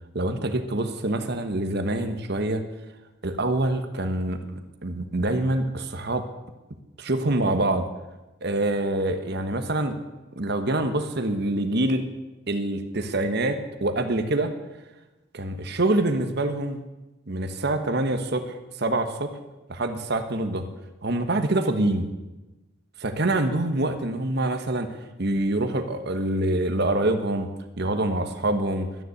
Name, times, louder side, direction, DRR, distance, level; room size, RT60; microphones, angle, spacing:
voice 1, 0.1-2.6 3.2-4.4 4.8-6.2 7.0-7.8 8.4-10.0 10.4-12.0 12.5-14.5 15.3-16.8 17.3-19.3 19.7-20.6 21.0-22.1 23.0-24.9 25.2-27.5 27.8-28.9, right 2 dB, 55° right, 8 dB, 1.3 m, -25 dB
12.5 x 9.9 x 8.0 m, 1.1 s
head